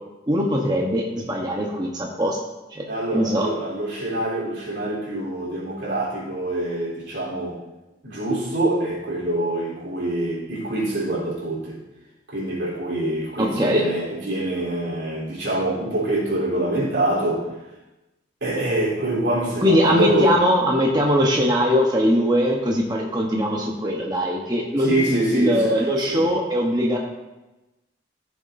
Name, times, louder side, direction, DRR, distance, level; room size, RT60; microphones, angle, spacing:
voice 1, 0.3-2.4 2.7-2.8 3.1-3.5 13.4-13.8 19.6-27.0, equal, 25° right, -1 dB, 0.9 m, -21 dB
voice 2, 2.9-7.6 8.0-11.8 12.3-17.4 18.4-20.3 24.8-25.7 26.1-26.3, right 1 dB, 85° right, -5 dB, 3.6 m, -25 dB
14.5 x 7.1 x 2.6 m, 1.0 s
head